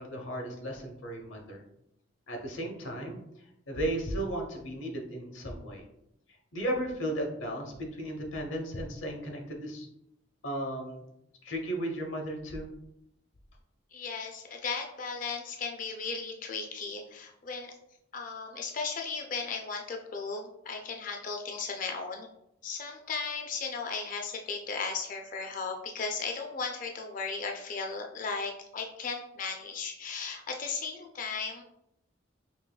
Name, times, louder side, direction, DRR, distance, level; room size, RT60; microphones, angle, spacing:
voice 1, 0.0-1.6 2.3-3.2 3.7-5.8 6.5-9.9 10.4-11.0 11.4-12.7, right 1 dB, 90° left, 2 dB, 0.9 m, -35 dB
voice 2, 13.9-17.7 18.1-22.3 22.6-31.6, left 4 dB, 45° left, 3 dB, 0.4 m, -36 dB
5.3 x 3.0 x 2.2 m, 0.80 s
head